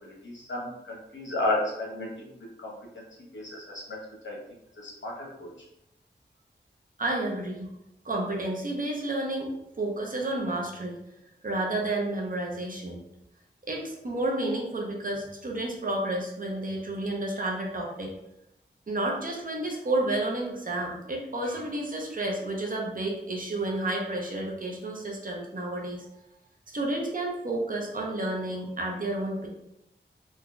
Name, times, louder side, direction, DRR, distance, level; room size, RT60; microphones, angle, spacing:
voice 1, 0.0-2.3 2.6-3.0 3.3-4.0 4.2-4.4 4.8-5.7, left 2 dB, 80° left, -3 dB, 1.0 m, -33 dB
voice 2, 7.0-7.7 8.0-11.0 11.4-13.0 13.6-18.1 18.9-26.1 26.7-29.5, right 1 dB, 45° right, -1 dB, 0.8 m, -31 dB
3.9 x 2.8 x 2.3 m, 0.84 s
wide cardioid pair, 75°, 19 cm